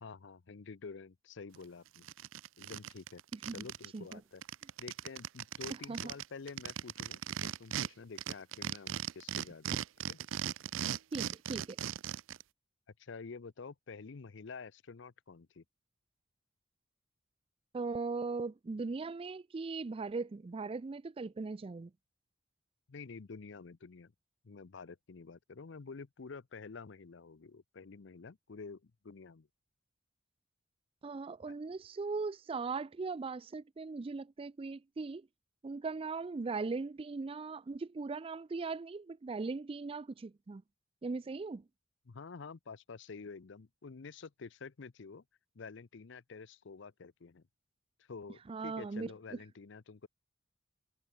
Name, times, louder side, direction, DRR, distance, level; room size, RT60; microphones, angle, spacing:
voice 1, 0.0-2.1 2.6-3.2 3.5-4.4 4.8-9.7 10.1-10.2 13.0-15.6 22.9-24.1 24.4-29.5 31.5-31.6 42.1-45.2 45.5-47.4 48.0-50.1, left 4 dB, 65° left, 0.6 m, -49 dB
sound 1, 1.5-1.6 2.0-4.1 4.4-7.9 8.2-12.4, right 9 dB, 85° right, 0.5 m, -38 dB
voice 2, 3.3-3.6 3.9-4.2 5.9-6.1 11.1-11.8 17.7-21.9 31.0-35.3 35.6-40.6 41.0-41.6 48.5-49.1, right 4 dB, 30° right, 0.4 m, -39 dB
head